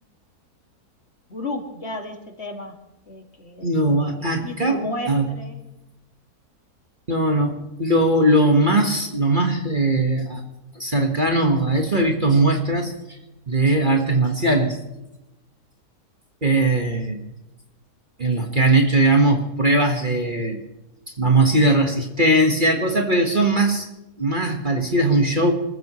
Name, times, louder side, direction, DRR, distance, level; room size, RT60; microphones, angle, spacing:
voice 1, 1.3-2.7 3.1-3.7 4.2-5.6, left 1 dB, 40° left, 2 dB, 2.5 m, -32 dB
voice 2, 3.6-5.3 7.1-10.4 10.7-13.0 13.5-14.8 16.4-17.2 18.2-20.6 21.2-23.9 24.2-25.5, right 2 dB, 30° right, 2 dB, 1.6 m, -19 dB
26.5 x 14.5 x 3.1 m, 0.94 s
omnidirectional pair, 1.7 m